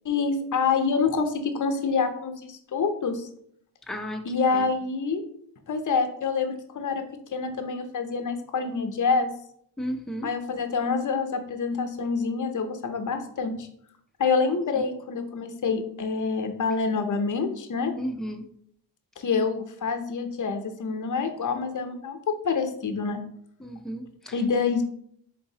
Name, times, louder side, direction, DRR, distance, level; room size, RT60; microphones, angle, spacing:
voice 1, 0.0-3.3 4.2-5.2 5.7-7.0 7.3-9.3 10.2-13.7 14.2-17.9 19.2-23.2 24.3-24.8, left 5 dB, 45° left, 6 dB, 0.6 m, -27 dB
voice 2, 3.9-4.2 4.5-4.7 9.8-10.3 18.0-18.5 23.6-24.3, equal, ahead, 3 dB, 0.4 m, -33 dB
3.9 x 3.9 x 2.7 m, 0.67 s
wide cardioid pair, 110°, 43 cm